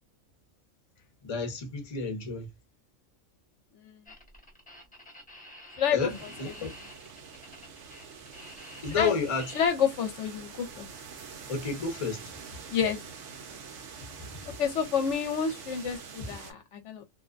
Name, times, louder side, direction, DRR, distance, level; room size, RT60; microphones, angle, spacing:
voice 1, 1.2-2.5 5.9-6.7 8.8-9.5 11.5-12.3, left 4 dB, 35° left, 0.6 m, -31 dB
sound 1, 4.1-9.7, left 1 dB, 5° left, 0.8 m, -48 dB
voice 2, 5.8-6.1 6.4-6.5 9.0-9.1 9.5-10.9 12.7-13.0 14.6-17.0, left 7 dB, 70° left, 0.9 m, -28 dB
sound 2, 6.1-16.5, right 6 dB, 70° right, 0.9 m, -46 dB
2.5 x 2.1 x 2.3 m
omnidirectional pair, 1.4 m